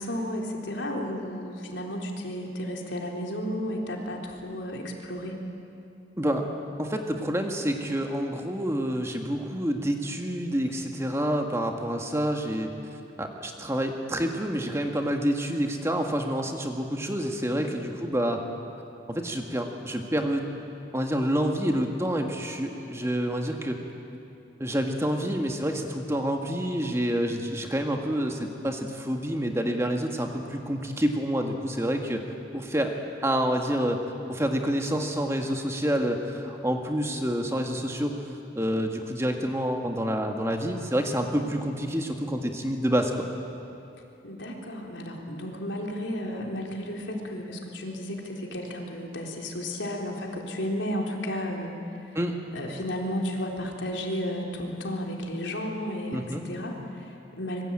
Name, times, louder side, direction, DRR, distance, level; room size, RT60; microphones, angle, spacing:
voice 1, 0.0-5.4 17.5-17.9 44.2-51.7 52.5-57.6, equal, 80° left, 0 dB, 3.9 m, -33 dB
voice 2, 6.8-12.7 13.2-18.4 19.1-20.4 20.9-23.8 24.6-32.2 32.5-32.9 33.2-34.0 34.3-38.1 38.6-43.3 52.2-52.4 56.1-56.4, equal, 15° right, 3 dB, 1.8 m, -28 dB
25.5 x 22.0 x 8.9 m, 2.7 s
head